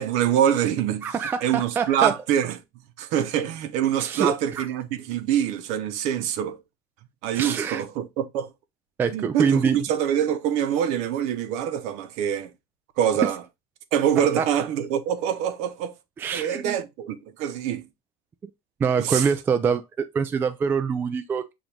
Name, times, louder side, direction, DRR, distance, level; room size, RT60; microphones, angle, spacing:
voice 1, 0.0-1.1 1.4-2.6 3.0-6.6 7.2-8.5 9.1-12.5 13.0-13.4 13.9-15.9 16.3-17.8 19.0-19.2, right 9 dB, 60° right, 0.8 m, -25 dB
voice 2, 1.0-2.1 4.0-4.7 7.3-7.8 9.0-9.8 14.4-14.5 16.2-16.8 18.8-21.5, right 6 dB, 15° right, 0.3 m, -25 dB
6.9 x 2.5 x 2.9 m
cardioid pair, 155°, 13 cm